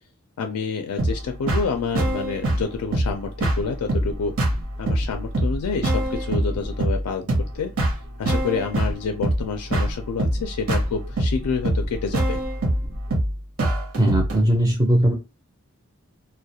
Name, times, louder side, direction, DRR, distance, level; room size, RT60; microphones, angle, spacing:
voice 1, 0.4-4.3 4.8-7.7 8.2-12.4, left 5 dB, 90° left, 5 dB, 0.4 m, -28 dB
sound 1, 1.0-14.4, right 1 dB, 65° right, 0.7 m, -24 dB
voice 2, 14.0-15.1, right 1 dB, 15° right, 2 dB, 0.4 m, -19 dB
2.3 x 2.0 x 2.7 m, 0.28 s
head